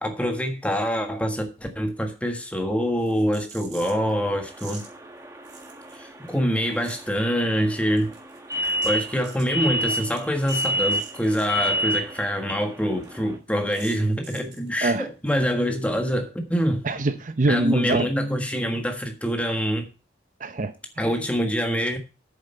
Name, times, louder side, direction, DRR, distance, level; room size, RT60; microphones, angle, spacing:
voice 1, 0.0-4.8 5.9-8.1 8.6-17.0 17.5-19.9 21.0-22.0, equal, 5° left, 1.5 m, -25 dB
sound 1, 3.0-4.1 4.5-4.9 5.4-6.3 6.5-7.2 7.7-11.6 11.8-11.9 12.2-12.3 12.6-12.7 13.0-13.1 13.7-14.7, right 5 dB, 65° right, 3.8 m, -46 dB
sound 2, 3.8-13.4, right 1 dB, 15° right, 1.3 m, -31 dB
voice 2, 16.8-18.1 20.4-21.1, right 2 dB, 40° right, 0.7 m, -24 dB
8.8 x 7.3 x 5.5 m
head